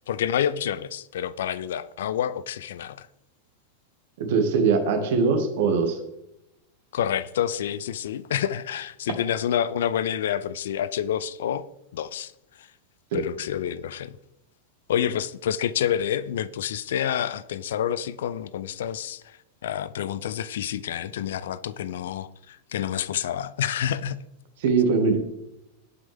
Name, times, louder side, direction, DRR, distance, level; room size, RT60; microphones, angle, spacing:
voice 1, 0.1-3.1 6.9-12.3 12.6-12.7 13.1-14.2 14.9-19.4 19.6-24.2, left 9 dB, 60° left, 0.5 m, -28 dB
voice 2, 4.2-6.0 13.1-13.2 24.6-25.2, right 5 dB, 55° right, 1.9 m, -21 dB
17.5 x 6.1 x 3.5 m
figure-of-eight pair, 90°, 0 cm